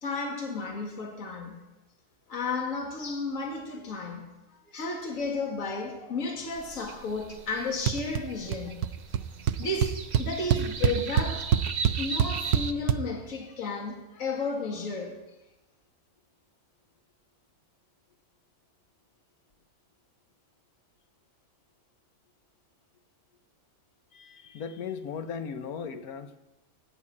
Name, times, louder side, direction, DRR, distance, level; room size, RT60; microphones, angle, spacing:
voice 1, 0.0-1.6 2.3-4.2 4.5-8.8 9.6-11.5 12.0-15.2, left 3 dB, 60° left, 1 dB, 2.2 m, -33 dB
sound 1, 6.6-12.7, right 5 dB, 50° right, 1.1 m, -38 dB
sound 2, 7.9-8.2 8.5-8.9 9.1-9.2 9.5-13.0, right 9 dB, 85° right, 1.1 m, -24 dB
voice 2, 24.1-26.4, left 6 dB, 75° left, 9 dB, 1.4 m, -37 dB
11.5 x 8.3 x 8.5 m, 0.98 s
omnidirectional pair, 1.6 m